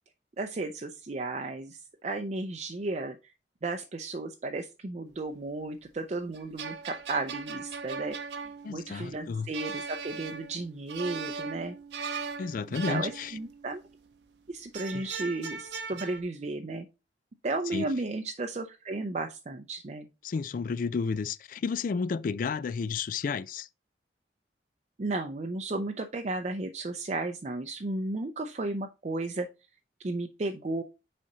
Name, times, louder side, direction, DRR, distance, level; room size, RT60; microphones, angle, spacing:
voice 1, 0.4-3.2 3.6-11.8 12.9-13.8 14.5-16.9 17.4-20.1 25.0-29.5 30.0-30.8, right 2 dB, 40° right, 0.5 m, -34 dB
sound 1, 6.3-13.8 14.7-16.2, right 5 dB, 75° right, 0.7 m, -39 dB
voice 2, 8.6-9.5 12.4-13.4 14.9-15.1 17.7-17.9 20.2-23.7, left 5 dB, 50° left, 0.3 m, -32 dB
6.5 x 4.3 x 3.9 m
head